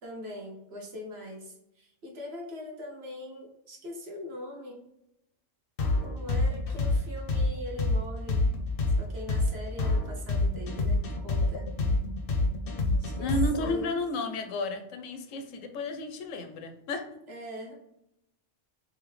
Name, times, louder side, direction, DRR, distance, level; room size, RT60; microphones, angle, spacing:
voice 1, 0.0-4.8 6.0-8.5 9.0-11.7 12.9-13.3 13.6-13.9 17.3-17.7, left 1 dB, 55° right, 0 dB, 1.2 m, -41 dB
sound 1, 5.8-13.7, left 3 dB, 55° left, 0.8 m, -26 dB
voice 2, 13.2-17.1, left 1 dB, 80° left, 7 dB, 1.0 m, -32 dB
4.0 x 2.6 x 3.1 m, 0.82 s
omnidirectional pair, 1.3 m